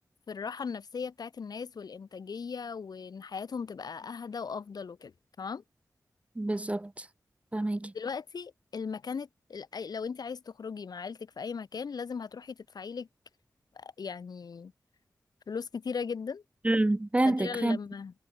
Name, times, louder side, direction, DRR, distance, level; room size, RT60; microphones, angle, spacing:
voice 1, 0.3-5.1 5.4-5.6 7.9-13.1 13.7-14.7 15.5-16.4 17.2-18.1, left 5 dB, 80° left, 2.1 m, -38 dB
voice 2, 6.4-7.1 7.5-7.9 16.6-17.8, right 2 dB, 20° right, 0.6 m, -27 dB
wide cardioid pair, 70°, 7 cm